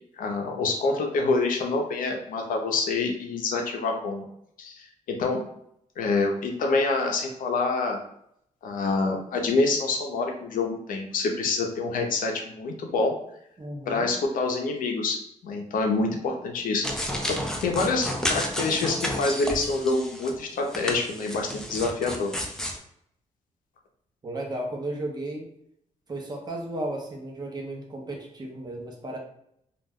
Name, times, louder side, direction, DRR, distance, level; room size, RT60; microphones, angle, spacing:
voice 1, 0.2-4.3 4.6-5.4 6.0-8.0 8.6-13.1 13.9-15.2 15.4-16.8 17.3-22.3, left 3 dB, 80° left, 2 dB, 0.6 m, -26 dB
voice 2, 13.6-14.1 24.2-25.5 26.1-29.2, right 1 dB, 30° right, 1 dB, 0.7 m, -34 dB
sound 1, 16.8-20.3 20.7-22.8, equal, 5° left, 0.4 m, -31 dB
2.4 x 2.1 x 3.5 m, 0.73 s
cardioid pair, 110°, 14 cm